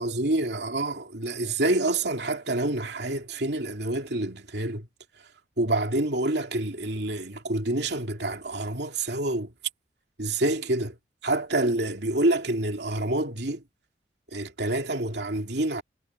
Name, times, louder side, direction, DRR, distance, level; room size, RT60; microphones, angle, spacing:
voice 1, 0.0-4.9 5.6-9.5 10.2-11.0 11.2-13.6 14.3-15.8, right 2 dB, 70° right, 2.7 m, -27 dB
head